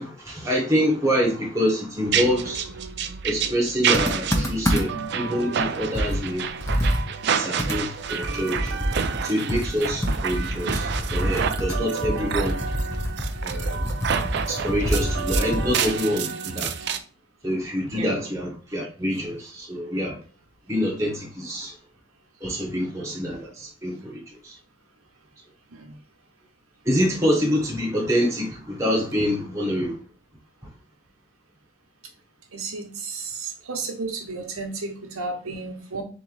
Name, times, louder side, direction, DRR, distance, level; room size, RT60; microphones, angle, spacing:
voice 1, 0.0-2.7 3.2-6.5 7.3-8.7 9.2-12.6 13.4-13.9 14.5-16.7 17.4-20.2 20.7-21.7 22.4-24.6 26.8-30.0, equal, 15° right, 1.0 m, -26 dB
sound 1, 2.1-17.0, right 7 dB, 50° right, 0.4 m, -29 dB
Computer keyboard, 3.9-5.1 5.5-5.6 5.9-9.2 9.5-16.0, equal, 15° left, 0.6 m, -27 dB
voice 2, 32.5-36.0, right 3 dB, 80° right, 1.1 m, -33 dB
3.9 x 3.0 x 3.9 m
head